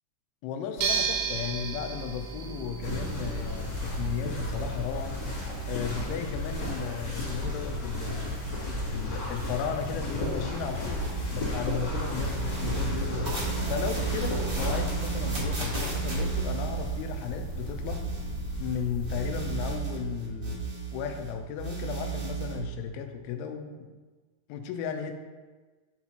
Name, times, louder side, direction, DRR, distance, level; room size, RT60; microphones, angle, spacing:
voice 1, 0.4-5.2 5.7-8.2 8.9-13.3 13.7-18.0 18.6-23.9 24.5-25.1, left 7 dB, 80° left, 5 dB, 3.0 m, -35 dB
sound 1, 0.8-6.2, right 6 dB, 75° right, 2.4 m, -34 dB
sound 2, 2.8-19.8, left 1 dB, 35° left, 1.9 m, -34 dB
sound 3, 11.0-11.9 12.1-18.7 19.0-21.3 21.6-22.6, right 5 dB, 50° right, 1.4 m, -34 dB
11.5 x 4.1 x 2.9 m, 1.3 s
omnidirectional pair, 5.6 m